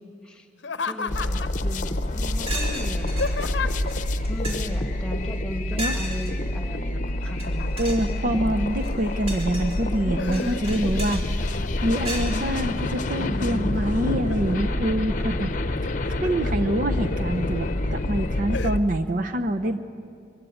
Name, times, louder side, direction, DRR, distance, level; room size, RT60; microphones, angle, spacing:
Laughter, 0.6-1.7 2.6-4.0 5.7-6.2 6.5-8.1 8.7-9.3 9.7-11.0 11.4-12.0 12.5-13.3 13.7-14.6 15.7-16.5 17.0-17.1 17.7-18.0 18.5-18.8, left 5 dB, 85° left, 0.7 m, -34 dB
voice 1, 0.8-8.6 10.0-10.7 11.1-11.2 13.2-13.7 15.1-15.3, left 1 dB, 5° left, 3 dB, 2.0 m, -37 dB
sound 1, 1.1-18.8, left 1 dB, 45° left, 0.8 m, -27 dB
sound 2, 2.0-2.1 2.5-3.3 3.9-4.0 4.2-4.8 5.8-6.3 7.3-7.5 7.7-8.1 8.7-9.8 10.3-11.2 12.0-12.3, right 1 dB, 35° right, 3.9 m, -34 dB
voice 2, 7.8-11.2 11.8-15.5 16.1-19.8, right 1 dB, 50° right, 7 dB, 0.8 m, -26 dB
23.0 x 15.5 x 9.4 m, 2.3 s
head